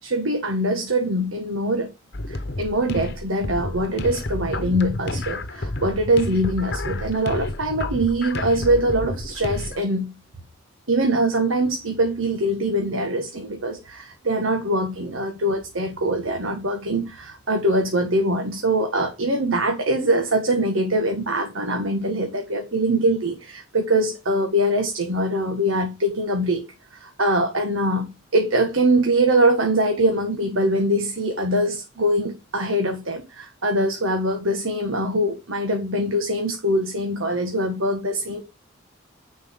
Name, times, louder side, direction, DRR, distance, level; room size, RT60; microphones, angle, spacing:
voice 1, 0.0-1.9 2.3-10.1 10.9-26.6 26.9-38.4, right 1 dB, 85° right, 1.7 m, -23 dB
sound 1, 2.1-9.8, left 2 dB, 55° left, 1.0 m, -30 dB
9.9 x 5.2 x 3.8 m
head